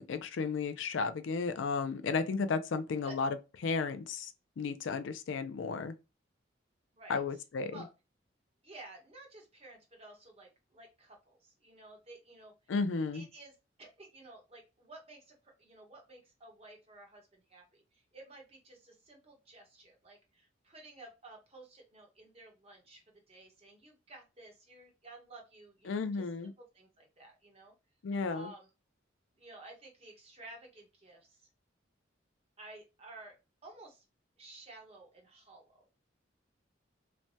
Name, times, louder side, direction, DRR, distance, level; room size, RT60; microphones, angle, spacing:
voice 1, 0.0-3.4 3.6-4.3 4.6-6.0 7.1-7.8 12.7-13.3 25.9-26.5 28.0-28.5, left 4 dB, 80° left, 0.4 m, -33 dB
voice 2, 6.9-7.4 7.7-7.9 8.6-12.7 13.1-27.7 28.3-28.7 29.4-31.5 32.6-33.4 33.6-34.0 34.4-35.8, right 2 dB, 35° right, 0.9 m, -53 dB
3.2 x 2.2 x 2.6 m
head